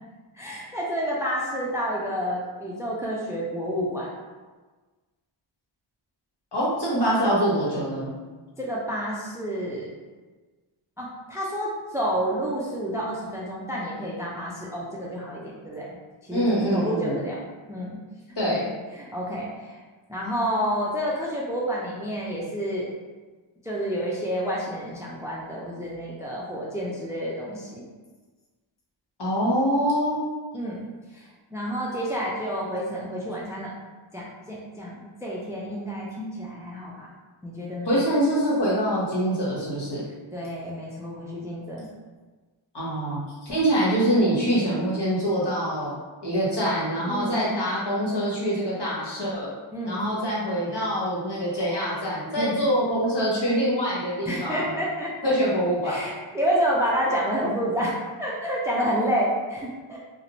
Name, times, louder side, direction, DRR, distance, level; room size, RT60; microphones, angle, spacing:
voice 1, 0.3-4.1 8.6-9.9 11.0-16.0 16.3-16.4 16.7-17.4 17.7-18.0 18.5-19.8 20.1-22.9 23.6-27.8 30.5-30.8 31.1-33.7 34.1-37.1 37.4-38.0 40.3-41.9 47.1-47.4 49.7-50.1 52.4-52.6 54.3-55.3 55.8-60.0, equal, 5° right, -5 dB, 0.5 m, -29 dB
voice 2, 6.5-8.1 16.3-17.2 18.3-18.6 29.2-30.2 37.8-40.0 42.7-45.9 46.2-49.5 49.8-54.7 55.2-56.0, equal, 55° left, -7 dB, 1.2 m, -24 dB
2.4 x 2.1 x 3.0 m, 1.3 s
cardioid pair, 45°, 50 cm